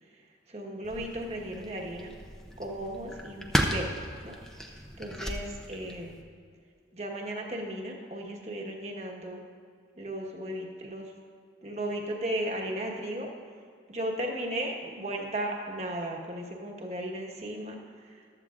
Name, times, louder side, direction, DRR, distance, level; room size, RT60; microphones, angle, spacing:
voice 1, 0.0-2.1 2.6-3.9 4.2-4.3 4.6-6.2 6.9-9.4 9.9-11.1 11.6-13.3 13.9-18.3, right 1 dB, 35° right, 0 dB, 1.3 m, -36 dB
sound 1, 0.8-6.2, equal, 5° left, 0.6 m, -35 dB
14.5 x 12.5 x 2.5 m, 2.2 s
head